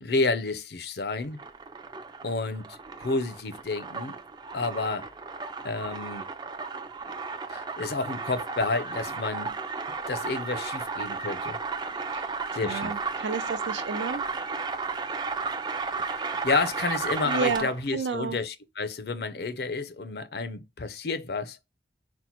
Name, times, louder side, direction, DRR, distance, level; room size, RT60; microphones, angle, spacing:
voice 1, 0.0-1.4 2.2-4.2 4.5-5.1 5.6-6.3 7.5-9.5 10.1-11.6 12.5-12.9 15.9-21.6, left 3 dB, 60° left, 0.5 m, -30 dB
sound 1, 1.2-17.9, right 4 dB, 25° right, 0.4 m, -34 dB
voice 2, 12.6-14.2 17.2-18.4, right 5 dB, 90° right, 0.6 m, -31 dB
4.3 x 2.1 x 4.3 m
head